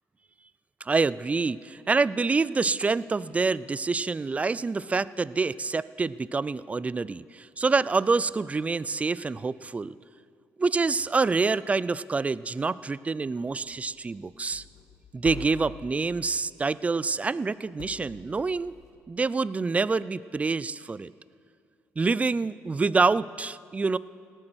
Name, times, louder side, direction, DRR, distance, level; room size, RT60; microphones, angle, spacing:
voice 1, 0.8-10.0 10.6-14.6 15.1-18.7 19.1-21.1 22.0-24.0, right 4 dB, 25° right, 19 dB, 0.4 m, -26 dB
sound 1, 13.4-16.6 17.8-18.9, left 6 dB, 65° left, 1.5 m, -45 dB
17.5 x 8.9 x 6.2 m, 2.2 s
supercardioid pair, 65°, 6 cm